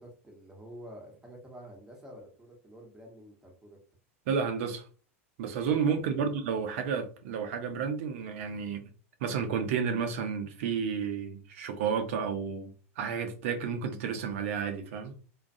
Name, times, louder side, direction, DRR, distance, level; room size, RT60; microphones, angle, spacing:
voice 1, 0.0-3.8 6.1-6.4, equal, 10° right, 1.0 m, -48 dB
voice 2, 4.3-4.9 5.4-8.8 9.2-15.1, right 6 dB, 65° right, 0.5 m, -31 dB
2.3 x 2.2 x 2.6 m
hypercardioid pair, 105°, 8 cm